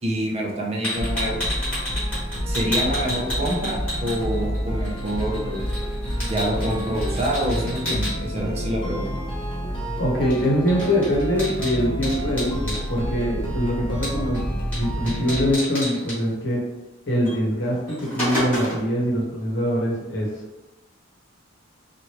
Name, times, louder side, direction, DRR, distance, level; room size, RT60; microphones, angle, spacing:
voice 1, 0.0-1.4 2.5-5.6 6.3-9.1, equal, 30° right, -1 dB, 0.5 m, -26 dB
sound 1, 0.8-4.6 4.8-8.1 10.3-10.4 10.7-12.8 14.0-14.4 14.7-14.8 15.1-16.2 17.2-17.4 17.7-18.9, equal, 10° left, 1.3 m, -30 dB
sound 2, 1.0-15.5, equal, 25° left, 0.7 m, -29 dB
voice 2, 10.0-14.4 14.7-16.6 17.1-20.3, equal, 55° left, -3 dB, 0.9 m, -23 dB
3.0 x 2.4 x 2.9 m, 0.99 s
head